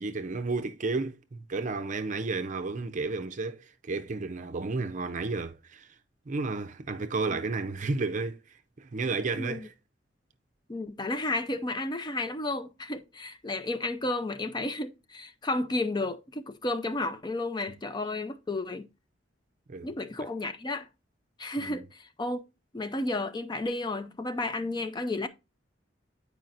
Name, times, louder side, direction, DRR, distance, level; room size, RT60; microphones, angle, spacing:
voice 1, 0.0-5.9 6.3-8.4 8.8-9.7 19.7-19.9 20.2-20.3 21.6-21.8, right 3 dB, 45° right, 0.5 m, -32 dB
voice 2, 9.3-9.7 10.7-18.9 19.8-20.9 21.4-22.4 22.7-25.3, left 2 dB, 25° left, 0.5 m, -32 dB
9.1 x 4.8 x 2.5 m
head